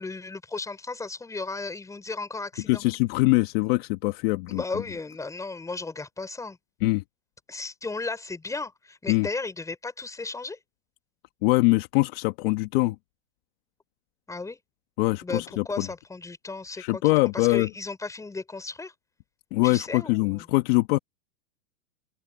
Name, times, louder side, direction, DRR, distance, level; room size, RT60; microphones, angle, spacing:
voice 1, 0.0-2.8 4.5-6.6 7.5-10.6 14.3-14.6 15.2-18.9 19.6-20.5, left 3 dB, 5° left, 5.5 m, -35 dB
voice 2, 2.7-4.6 6.8-7.0 9.1-9.3 11.4-12.9 15.0-15.9 16.8-17.7 19.5-21.0, left 22 dB, 40° left, 1.5 m, -23 dB
open air
supercardioid pair, 155°, 47 cm